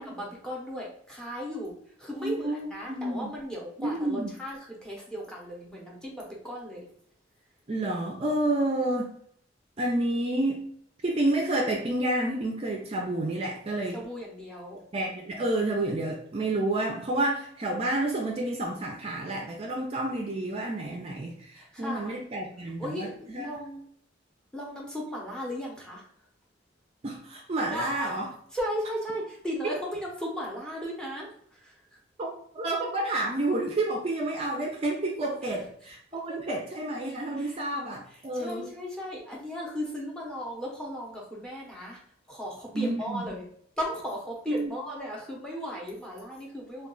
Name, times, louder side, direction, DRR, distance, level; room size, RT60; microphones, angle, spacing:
voice 1, 0.0-1.7 2.0-6.8 13.9-14.8 21.6-22.1 22.8-23.9 24.5-26.0 27.7-28.2 28.5-31.3 31.6-31.7 37.4-37.6 38.3-42.0 42.3-43.4 43.8-46.9, equal, 5° left, -3 dB, 0.7 m, -36 dB
voice 2, 2.1-3.3 3.8-4.3 7.7-9.1 9.8-10.7 11.0-14.0 14.9-23.5 27.0-28.3 32.2-38.7 42.7-43.3 44.5-44.7, right 1 dB, 30° right, 0 dB, 0.4 m, -30 dB
2.3 x 2.3 x 3.7 m, 0.64 s
head